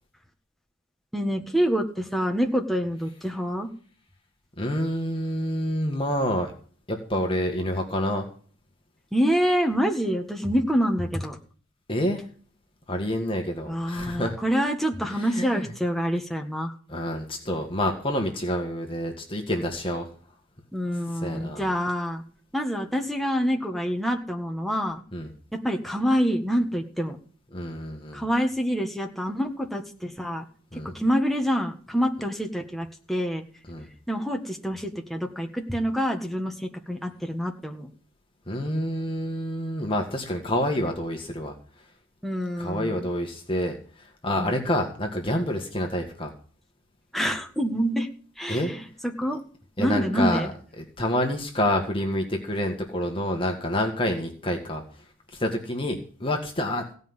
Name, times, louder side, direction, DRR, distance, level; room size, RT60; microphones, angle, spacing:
voice 1, 1.1-3.7 9.1-11.4 13.6-16.7 20.7-22.2 22.5-25.0 25.5-27.2 28.1-30.4 30.7-33.4 34.1-37.9 42.2-43.1 44.4-44.5 47.1-48.1 48.4-49.4 49.8-50.5, equal, ahead, 2 dB, 1.6 m, -26 dB
voice 2, 4.6-6.5 6.9-8.3 11.9-12.3 12.9-14.4 15.0-15.7 16.9-20.1 21.2-21.6 25.1-25.3 27.5-28.2 30.7-30.9 33.7-33.9 38.5-41.5 42.6-46.3 48.5-48.7 49.8-50.5 50.8-55.1 55.3-56.8, left 1 dB, 25° left, 2 dB, 1.8 m, -28 dB
16.5 x 5.5 x 9.8 m, 0.43 s
head